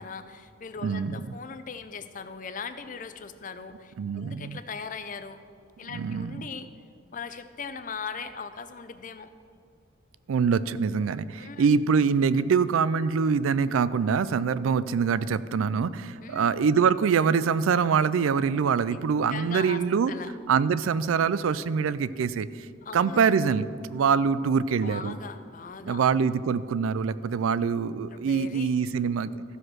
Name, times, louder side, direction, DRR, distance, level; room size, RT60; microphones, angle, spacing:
voice 1, 0.0-5.4 5.8-6.7 7.1-9.3 11.4-11.7 16.2-16.5 18.9-19.0 19.3-19.8 20.1-20.3 22.8-23.2 24.8-26.0 28.1-28.9, left 5 dB, 40° left, 10 dB, 0.5 m, -39 dB
voice 2, 0.8-1.2 4.0-4.6 5.9-6.5 10.3-20.1 20.5-22.7 22.9-25.1 25.8-29.4, right 6 dB, 85° right, 16 dB, 0.4 m, -24 dB
14.5 x 5.1 x 6.1 m, 2.4 s
head